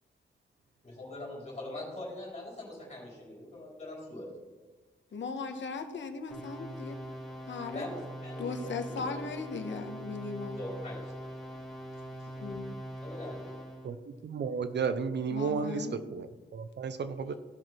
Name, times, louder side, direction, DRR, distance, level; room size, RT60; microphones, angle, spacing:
voice 1, 0.8-4.3 5.5-5.6 7.7-9.3 9.5-9.9 10.6-11.1 13.0-13.6, left 1 dB, 30° left, -3 dB, 4.1 m, -42 dB
voice 2, 5.1-7.0 7.5-7.8 8.4-10.6 12.4-12.8 15.3-16.0, left 4 dB, 65° left, 6 dB, 1.1 m, -38 dB
sound 1, 6.3-13.9, right 1 dB, ahead, 3.7 m, -42 dB
voice 3, 14.2-17.3, right 5 dB, 60° right, 11 dB, 0.6 m, -33 dB
16.0 x 6.1 x 4.5 m, 1.3 s
wide cardioid pair, 180°, 21 cm